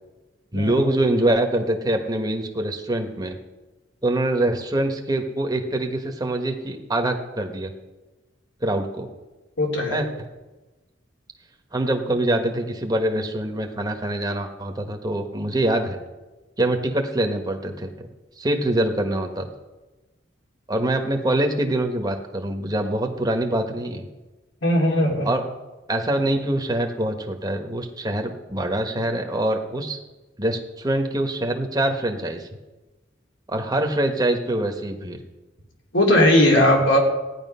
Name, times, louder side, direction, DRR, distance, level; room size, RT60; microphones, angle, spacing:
voice 1, 0.5-3.4 4.0-7.7 8.6-9.1 9.9-10.1 11.7-16.0 16.6-18.1 18.4-19.5 20.7-24.0 25.2-25.5 25.9-30.0 30.4-32.5 33.5-35.2, right 1 dB, 20° right, 4 dB, 1.4 m, -24 dB
voice 2, 9.6-10.0 24.6-25.3 35.9-37.0, left 1 dB, 70° left, 0 dB, 3.1 m, -18 dB
15.5 x 10.5 x 5.6 m, 1.1 s
head